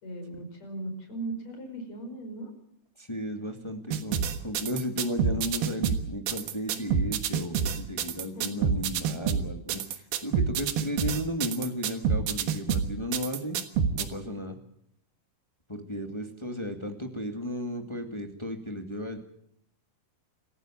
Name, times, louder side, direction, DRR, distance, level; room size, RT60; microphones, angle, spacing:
voice 1, 0.0-2.5 8.2-8.5, right 2 dB, 45° left, 5 dB, 6.2 m, -38 dB
voice 2, 3.0-13.6 13.9-14.6 15.7-19.2, left 1 dB, 15° left, 4 dB, 0.9 m, -34 dB
sound 1, 3.9-14.0, right 7 dB, 75° right, 3.2 m, -27 dB
27.0 x 15.0 x 7.4 m, 0.73 s
omnidirectional pair, 4.5 m